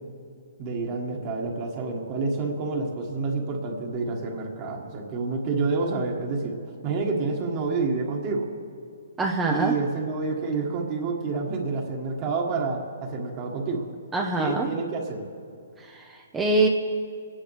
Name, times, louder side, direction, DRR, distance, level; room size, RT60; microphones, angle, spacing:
voice 1, 0.6-6.6 6.8-8.5 9.5-13.8 14.4-15.2, right 3 dB, 30° right, 0 dB, 1.7 m, -28 dB
voice 2, 9.2-9.7 14.1-14.7 15.8-16.7, right 2 dB, 10° right, 0 dB, 0.7 m, -24 dB
27.5 x 10.0 x 3.3 m, 2.3 s
hypercardioid pair, 155°, 0 cm